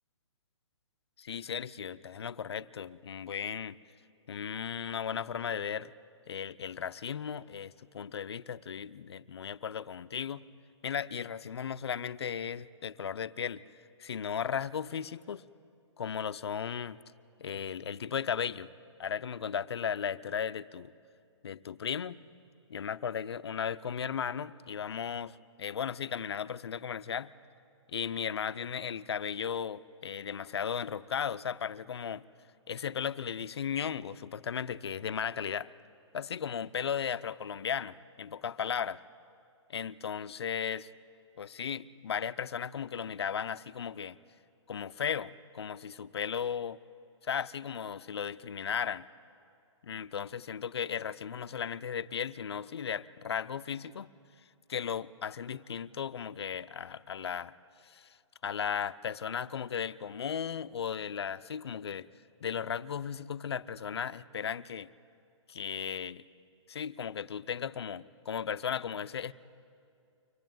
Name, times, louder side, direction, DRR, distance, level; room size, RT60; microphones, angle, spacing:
voice 1, 1.2-3.8 4.3-5.9 6.3-10.4 10.8-13.6 14.0-15.4 16.0-17.0 17.4-18.7 19.0-20.9 21.4-22.2 22.7-27.3 27.9-32.2 32.7-35.7 36.1-39.0 39.7-40.9 41.4-44.2 44.7-46.8 47.2-49.1 49.8-54.1 54.7-57.5 57.8-58.1 58.4-62.1 62.4-64.9 65.5-66.2 66.7-69.3, left 7 dB, 60° left, 14 dB, 0.6 m, -36 dB
24.5 x 18.0 x 9.2 m, 2.5 s
hypercardioid pair, 175°, 16 cm